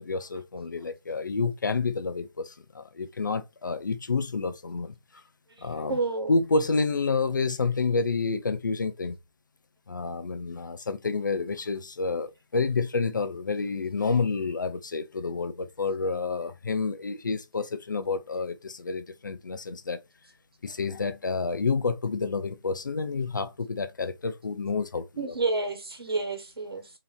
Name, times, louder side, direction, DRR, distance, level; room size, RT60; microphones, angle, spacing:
voice 1, 0.0-4.9 5.6-6.0 6.3-9.2 9.9-20.0 20.6-25.3, left 4 dB, 55° left, 0.5 m, -29 dB
voice 2, 5.6-6.4 25.2-26.9, right 3 dB, 85° right, 1.3 m, -30 dB
3.2 x 2.9 x 2.5 m
hypercardioid pair, 175°, 12 cm